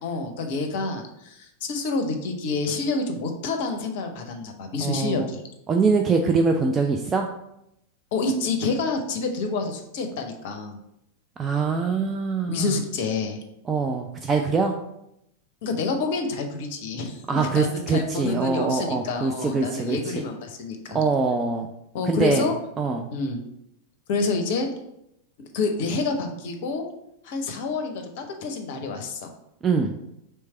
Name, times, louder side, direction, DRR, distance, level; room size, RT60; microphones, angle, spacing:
voice 1, 0.0-5.4 8.1-10.8 12.5-13.4 15.6-21.0 21.9-22.5 23.1-23.4 24.1-24.7 25.5-26.9 27.2-29.3, left 3 dB, 50° left, 5 dB, 0.6 m, -28 dB
voice 2, 4.8-5.3 5.7-7.3 11.4-12.8 13.7-14.7 17.3-20.2 20.9-21.7 22.0-22.5 22.8-23.1 29.6-29.9, right 4 dB, 20° right, 3 dB, 0.3 m, -23 dB
3.2 x 3.2 x 4.3 m, 0.82 s
figure-of-eight pair, 90°, 0 cm